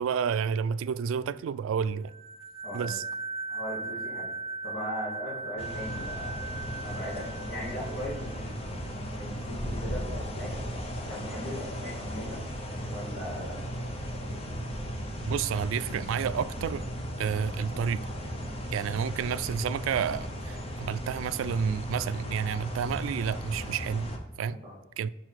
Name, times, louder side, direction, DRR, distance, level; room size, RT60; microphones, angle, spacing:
voice 1, 0.0-2.1 2.7-3.0 15.3-16.8 17.2-18.1 18.7-24.1 24.4-24.6 25.0-25.1, right 7 dB, 90° right, 0.3 m, -30 dB
sound 1, 2.1-8.5, right 3 dB, 30° right, 0.6 m, -38 dB
voice 2, 2.6-3.0 3.5-4.3 4.6-6.4 6.8-10.5 11.1-12.4 12.8-13.6 18.9-19.1 24.6-24.7, equal, 70° left, 2.8 m, -39 dB
sound 2, 5.6-24.2, equal, 30° left, 0.8 m, -36 dB
6.1 x 5.6 x 4.6 m
head